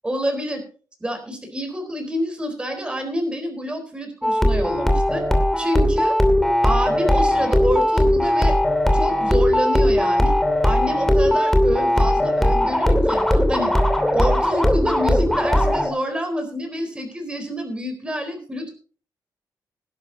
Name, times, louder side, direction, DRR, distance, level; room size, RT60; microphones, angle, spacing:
voice 1, 0.0-0.6 1.0-5.3 5.6-6.2 6.6-8.6 8.9-10.3 10.6-13.7 14.1-18.7, equal, 15° right, 5 dB, 4.0 m, -28 dB
sound 1, 4.2-15.9, left 1 dB, 5° left, 2.6 m, -18 dB
19.5 x 11.0 x 2.8 m, 0.40 s
cardioid pair, 120°, 7 cm